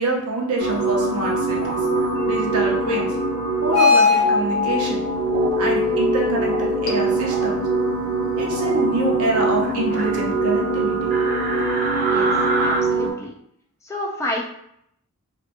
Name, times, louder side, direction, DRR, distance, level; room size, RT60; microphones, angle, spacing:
voice 1, 0.0-1.8 2.3-3.1 3.6-5.0 5.6-7.6 8.4-11.1, right 2 dB, 90° right, -2 dB, 0.7 m, -26 dB
sound 1, 0.6-13.1, right 1 dB, 70° left, 0.7 m, -22 dB
sound 2, 1.5-2.1 2.8-3.1 3.8-4.4 5.3-5.7 6.1-6.7 7.0-7.5 8.5-8.9 9.3-10.2 11.1-12.8, right 3 dB, 40° right, 0.6 m, -29 dB
voice 2, 12.1-13.3 13.8-14.4, left 1 dB, 15° left, -1 dB, 0.3 m, -30 dB
2.7 x 2.2 x 2.5 m, 0.73 s
head